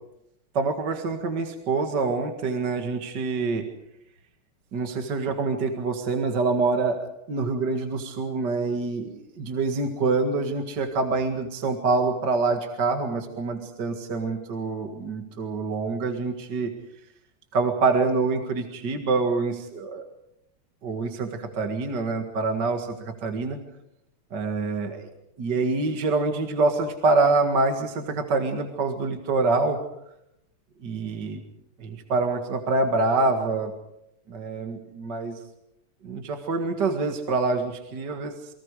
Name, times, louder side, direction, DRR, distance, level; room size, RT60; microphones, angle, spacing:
voice 1, 0.5-3.7 4.7-16.7 17.5-20.0 20.8-23.6 24.3-25.1 25.4-29.8 30.8-31.4 31.8-33.7 34.3-35.4 36.0-38.5, right 3 dB, 50° right, 5 dB, 2.4 m, -26 dB
28.5 x 24.0 x 4.9 m, 0.79 s
omnidirectional pair, 2.4 m